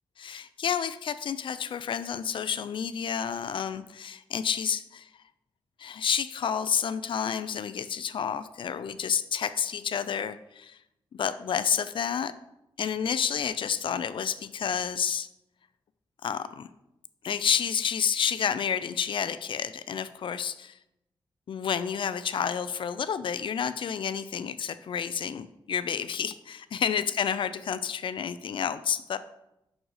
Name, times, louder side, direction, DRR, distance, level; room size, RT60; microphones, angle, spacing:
voice 1, 0.2-5.1 5.8-10.8 11.1-12.3 12.8-15.3 16.2-16.7 17.2-20.8 21.5-29.2, left 7 dB, 65° left, 13 dB, 0.4 m, -30 dB
6.3 x 6.2 x 4.8 m, 0.87 s
wide cardioid pair, 125°, 9 cm